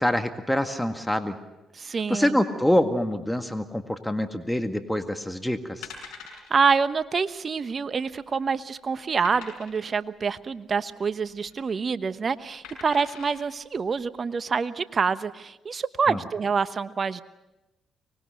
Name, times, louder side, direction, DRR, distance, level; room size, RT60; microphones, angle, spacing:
voice 1, 0.0-1.4 2.1-5.9 16.1-16.2, left 1 dB, 5° left, 7 dB, 1.8 m, -25 dB
voice 2, 1.7-2.4 6.5-17.2, right 5 dB, 45° right, 13 dB, 1.1 m, -26 dB
sound 1, 5.8-6.5 6.9-7.1 7.3-7.4 8.0-8.5 9.2-9.9 11.3-11.6 12.6-13.4 14.0-14.1, left 6 dB, 80° left, 6.6 m, -43 dB
24.5 x 20.5 x 6.4 m, 0.99 s
supercardioid pair, 55°, 0 cm